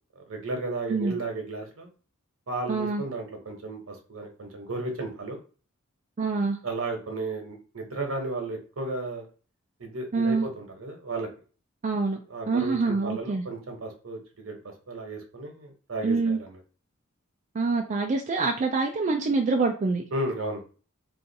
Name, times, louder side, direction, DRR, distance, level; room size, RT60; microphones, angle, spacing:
voice 1, 0.1-1.9 2.5-5.4 6.6-9.3 9.8-11.3 12.3-14.6 14.9-16.6 20.1-20.6, right 2 dB, 65° right, 3 dB, 1.0 m, -34 dB
voice 2, 2.7-3.0 6.2-6.6 10.1-10.5 11.8-12.2 12.5-13.4 16.0-16.4 17.5-20.0, right 3 dB, 35° right, 2 dB, 0.4 m, -25 dB
2.6 x 2.4 x 3.9 m, 0.38 s
head